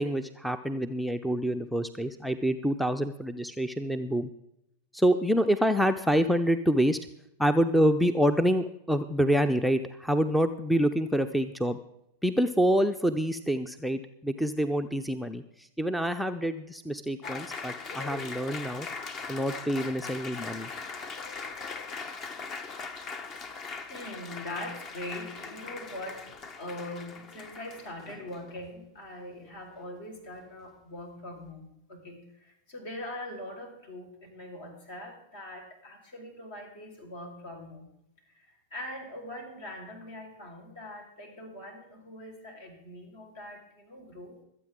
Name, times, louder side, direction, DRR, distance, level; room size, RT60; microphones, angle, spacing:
voice 1, 0.0-4.3 4.9-7.0 7.4-11.8 12.2-15.4 15.8-18.9 19.3-20.7, equal, ahead, 11 dB, 0.6 m, -26 dB
Applause, 17.2-28.6, left 4 dB, 35° left, 1.2 m, -40 dB
voice 2, 23.9-26.3 26.6-37.9 38.3-44.4, left 1 dB, 60° left, 2 dB, 4.9 m, -42 dB
25.0 x 8.7 x 3.7 m, 0.81 s
figure-of-eight pair, 95°, 0 cm